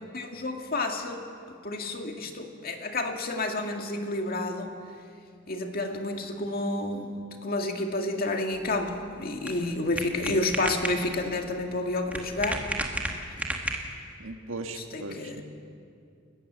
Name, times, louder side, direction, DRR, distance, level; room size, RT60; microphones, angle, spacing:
voice 1, 0.1-4.7 5.5-7.1 7.4-12.6 14.9-15.4, left 2 dB, 50° left, 3 dB, 2.1 m, -30 dB
sound 1, 8.5-14.2, right 1 dB, 10° right, 2.0 m, -34 dB
voice 2, 14.2-15.4, right 2 dB, 80° right, 4 dB, 1.9 m, -38 dB
29.5 x 15.0 x 7.5 m, 2.4 s
head